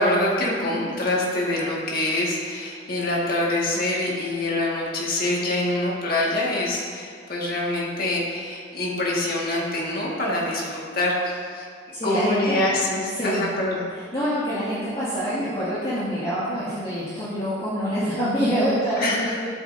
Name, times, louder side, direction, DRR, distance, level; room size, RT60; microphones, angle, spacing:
voice 1, 0.0-11.7 12.0-13.8 19.0-19.3, left 1 dB, 45° left, -4 dB, 1.7 m, -25 dB
voice 2, 11.9-12.6 13.1-13.5 13.9-19.4, equal, 25° left, -12 dB, 2.1 m, -26 dB
12.5 x 7.8 x 2.6 m, 2.1 s
head